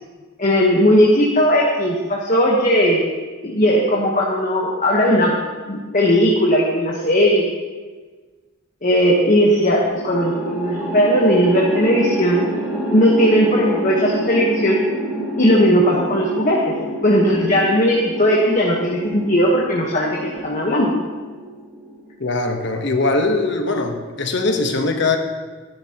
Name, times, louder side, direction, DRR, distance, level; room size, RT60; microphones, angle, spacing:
voice 1, 0.4-3.1 3.4-5.4 5.7-7.5 8.8-12.5 12.9-14.8 15.4-16.7 17.0-21.0, equal, 40° left, -3 dB, 1.2 m, -17 dB
sound 1, 9.8-22.2, equal, 10° right, 2.3 m, -28 dB
voice 2, 22.2-25.2, left 3 dB, 60° left, 4 dB, 1.1 m, -21 dB
13.0 x 10.0 x 2.9 m, 1.4 s
head